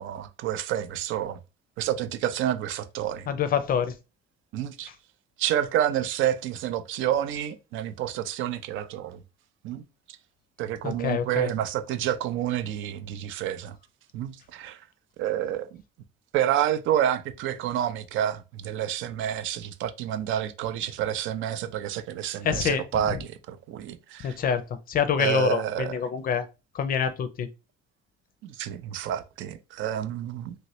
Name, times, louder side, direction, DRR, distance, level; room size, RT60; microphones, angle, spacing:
voice 1, 0.0-1.4 1.8-3.3 4.5-4.9 5.4-9.2 9.6-9.8 10.6-13.8 14.1-14.8 15.2-15.7 16.3-24.4 25.2-26.0 28.4-30.6, right 11 dB, 75° right, 0.5 m, -29 dB
voice 2, 3.3-3.9 10.8-11.5 22.4-22.9 24.2-26.5 26.7-27.5, left 7 dB, 45° left, 0.4 m, -26 dB
3.0 x 2.7 x 3.0 m
cardioid pair, 125°, 20 cm